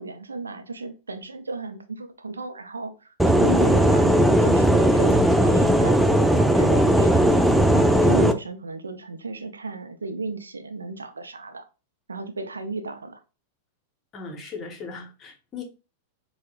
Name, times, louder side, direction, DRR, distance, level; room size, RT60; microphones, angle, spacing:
voice 1, 0.0-7.3 7.7-11.6 12.1-13.2, right 3 dB, 80° right, 0.5 m, -34 dB
sound 1, 3.2-8.3, right 1 dB, 5° right, 0.4 m, -18 dB
voice 2, 14.1-15.6, left 4 dB, 30° left, 0.9 m, -38 dB
4.4 x 2.1 x 2.3 m
figure-of-eight pair, 95°, 0 cm